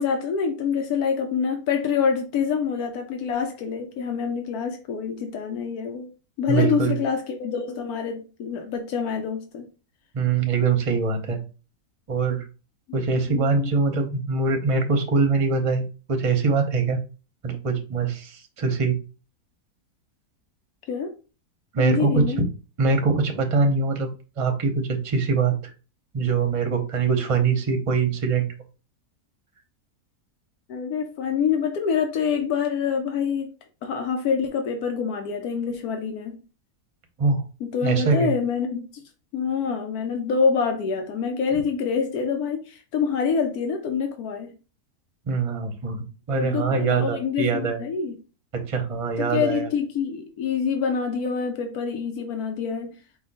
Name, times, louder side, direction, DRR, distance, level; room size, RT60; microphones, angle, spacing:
voice 1, 0.0-6.1 6.4-9.7 13.3-13.7 20.9-21.1 21.8-22.4 30.7-33.5 33.8-36.4 37.6-39.0 39.3-44.6 46.3-48.2 49.2-52.9, left 6 dB, 80° left, 1.2 m, -26 dB
voice 2, 6.5-6.9 10.1-11.4 12.1-12.4 12.9-17.0 17.4-19.0 21.7-22.2 22.8-24.1 24.4-25.5 26.1-28.5 37.2-37.4 37.8-38.3 45.3-47.8 48.5-49.7, right 4 dB, 30° right, 0.6 m, -23 dB
4.9 x 2.4 x 4.0 m
omnidirectional pair, 1.6 m